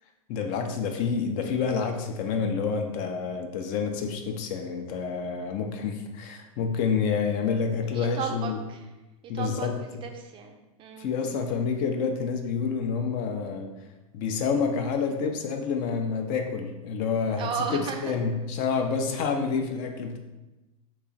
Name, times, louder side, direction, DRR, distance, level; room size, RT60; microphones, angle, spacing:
voice 1, 0.3-8.6 9.3-9.8 11.0-13.7 14.1-20.2, left 5 dB, 45° left, 4 dB, 0.5 m, -28 dB
voice 2, 7.9-8.9 9.2-11.1 17.3-18.1, right 6 dB, 30° right, 4 dB, 0.4 m, -35 dB
3.0 x 2.3 x 3.9 m, 1.0 s
hypercardioid pair, 95°, 19 cm